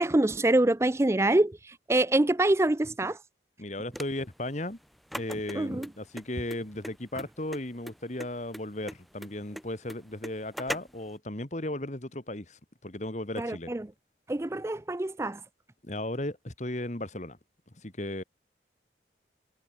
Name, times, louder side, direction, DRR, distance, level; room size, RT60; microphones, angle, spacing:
voice 1, 0.0-3.2 5.5-5.9 13.4-13.9 14.3-15.4, right 1 dB, 15° right, 0.4 m, -25 dB
voice 2, 3.6-4.8 5.2-13.7 15.8-17.4 17.7-18.2, left 1 dB, 40° left, 2.1 m, -36 dB
sound 1, 3.9-11.1, equal, ahead, 2.3 m, -41 dB
head